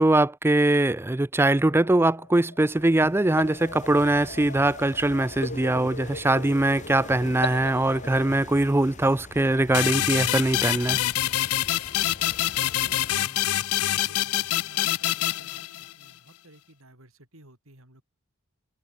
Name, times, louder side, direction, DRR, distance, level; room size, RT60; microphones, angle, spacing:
voice 1, 0.0-11.0, right 2 dB, 10° right, 0.4 m, -22 dB
sound 1, 1.7-8.4, left 3 dB, 50° left, 2.8 m, -39 dB
sound 2, 2.7-13.2, left 2 dB, 35° left, 1.2 m, -44 dB
sound 3, 9.7-16.1, left 13 dB, 85° left, 0.6 m, -26 dB
voice 2, 12.3-18.0, right 1 dB, 65° right, 6.9 m, -55 dB
head